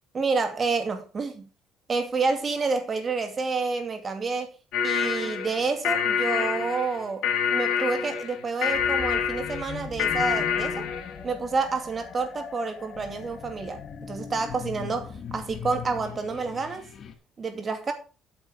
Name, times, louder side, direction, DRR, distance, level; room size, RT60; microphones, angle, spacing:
voice 1, 0.1-1.5 1.9-4.5 4.8-10.9 11.2-16.9 17.4-17.9, right 4 dB, 35° right, 2.5 m, -29 dB
sound 1, 4.7-11.2, left 7 dB, 75° left, 2.4 m, -27 dB
sound 2, 8.7-17.2, left 7 dB, 45° left, 1.7 m, -40 dB
8.9 x 7.1 x 5.2 m
cardioid pair, 100°, 0 cm